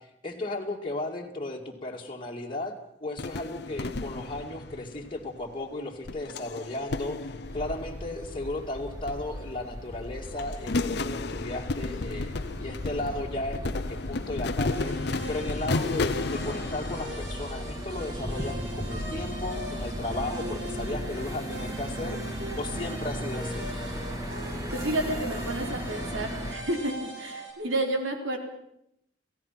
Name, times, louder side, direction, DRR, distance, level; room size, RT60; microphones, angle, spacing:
voice 1, 0.0-2.7 3.0-15.0 15.3-22.2 22.6-23.7, left 2 dB, 25° left, -1 dB, 2.5 m, -35 dB
sound 1, 3.2-5.5 6.1-8.6 9.0-9.9 10.2-17.2, left 3 dB, 55° left, 0.8 m, -33 dB
sound 2, 7.4-26.5, equal, 20° right, 2.5 m, -37 dB
sound 3, 14.7-27.5, equal, 60° right, 6.8 m, -40 dB
voice 2, 24.7-28.4, right 1 dB, 85° right, 3 dB, 4.0 m, -30 dB
29.5 x 16.0 x 5.9 m, 0.77 s
head